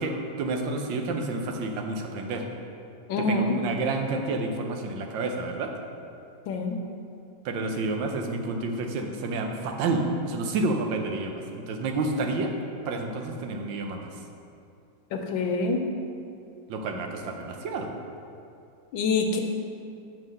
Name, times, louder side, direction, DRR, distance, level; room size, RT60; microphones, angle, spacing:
voice 1, 0.0-2.4 3.2-5.7 7.4-12.5 12.8-14.1 16.7-17.9, right 3 dB, 90° right, 3 dB, 1.5 m, -29 dB
voice 2, 3.1-3.6 6.5-6.8 15.1-15.8 18.9-19.4, left 3 dB, 85° left, 4 dB, 1.5 m, -26 dB
6.0 x 4.7 x 6.4 m, 2.5 s
omnidirectional pair, 2.0 m